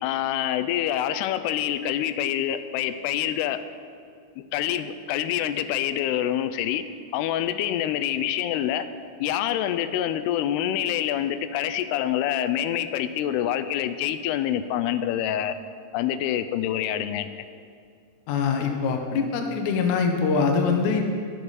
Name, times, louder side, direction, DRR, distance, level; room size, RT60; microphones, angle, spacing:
voice 1, 0.0-3.6 4.4-6.8 7.1-8.9 9.2-15.6 15.9-17.3, left 11 dB, 90° left, 10 dB, 2.6 m, -26 dB
voice 2, 18.3-21.0, left 5 dB, 70° left, 3 dB, 2.0 m, -23 dB
11.5 x 11.5 x 4.1 m, 2.3 s
omnidirectional pair, 4.6 m